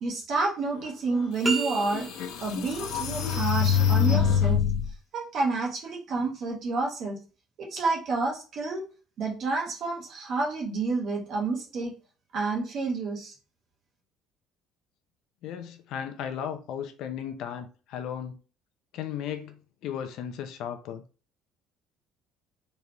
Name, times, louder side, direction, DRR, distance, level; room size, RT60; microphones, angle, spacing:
voice 1, 0.0-2.1 2.4-4.6 5.1-7.2 7.6-8.8 9.2-11.9 12.3-13.3, right 3 dB, 40° right, 1.4 m, -29 dB
sound 1, 1.1-1.2 1.8-4.9, left 8 dB, 75° left, 1.0 m, -25 dB
sound 2, 1.4-2.5, right 4 dB, 15° right, 0.7 m, -31 dB
voice 2, 15.4-18.4 18.9-19.6 19.8-21.0, left 8 dB, 55° left, 0.6 m, -35 dB
4.1 x 3.4 x 3.0 m
cardioid pair, 180°, 0 cm